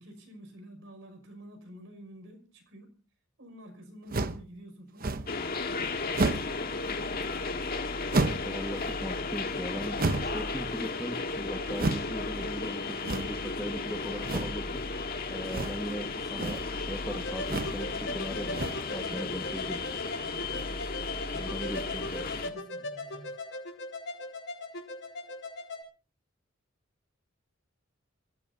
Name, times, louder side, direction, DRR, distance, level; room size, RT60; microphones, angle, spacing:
voice 1, 0.0-3.0 3.4-5.1 5.7-7.3 19.0-19.3 20.1-20.7 22.0-23.4, equal, 70° right, 6 dB, 5.8 m, -49 dB
sound 1, 4.1-4.5 5.0-5.4 6.1-6.6 8.1-8.5 10.0-10.4 11.7-12.1 13.0-13.5 14.2-14.6 15.5-15.9 16.2-16.7 17.4-17.8 18.5-18.9, right 2 dB, 45° right, 0.9 m, -31 dB
sound 2, 5.3-22.5, left 3 dB, 50° left, 1.7 m, -34 dB
voice 2, 8.2-19.8 21.3-22.3, equal, ahead, 5 dB, 1.4 m, -39 dB
sound 3, 17.1-25.8, left 2 dB, 65° left, 5.4 m, -40 dB
27.0 x 15.5 x 2.7 m, 0.35 s
head